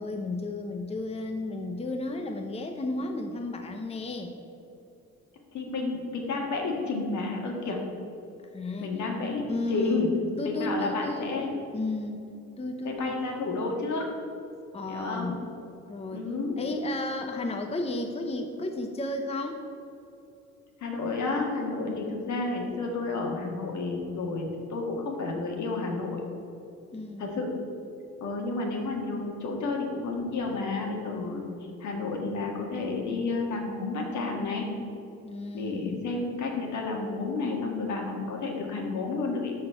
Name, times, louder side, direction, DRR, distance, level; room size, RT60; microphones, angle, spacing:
voice 1, 0.0-4.3 8.5-8.9 9.5-10.1 10.4-11.4 11.7-12.2 12.6-13.2 14.7-15.4 15.9-16.3 16.6-19.6 26.9-27.5 35.2-35.9, left 2 dB, 20° left, 4 dB, 0.7 m, -33 dB
voice 2, 5.5-7.8 8.8-10.1 10.4-11.5 12.8-14.1 14.9-15.4 16.1-16.6 20.8-26.2 27.2-27.6 28.2-31.4 31.8-34.7 35.5-39.5, left 3 dB, 70° left, 1 dB, 1.8 m, -31 dB
12.5 x 4.3 x 5.7 m, 2.7 s
cardioid pair, 90°, 30 cm